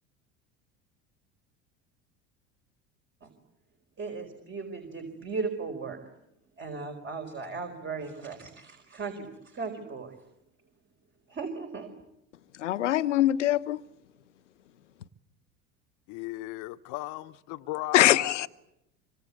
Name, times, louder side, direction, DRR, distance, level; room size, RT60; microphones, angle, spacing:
voice 1, 4.0-6.0 6.6-10.1 11.3-11.9, right 4 dB, 35° right, 4.6 m, -37 dB
voice 2, 12.6-13.8 17.9-18.5, left 13 dB, 85° left, 1.1 m, -23 dB
voice 3, 16.1-18.5, left 18 dB, 60° left, 1.1 m, -36 dB
25.5 x 25.0 x 8.4 m
hypercardioid pair, 75°, 35 cm